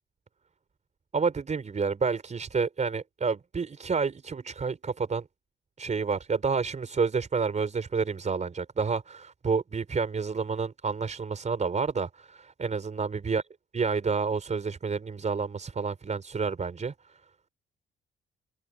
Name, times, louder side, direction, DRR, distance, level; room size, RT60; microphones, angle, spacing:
voice 1, 1.1-5.2 5.8-13.4 13.7-16.9, right 5 dB, 35° right, 4.8 m, -29 dB
open air
cardioid pair, 90°, 20 cm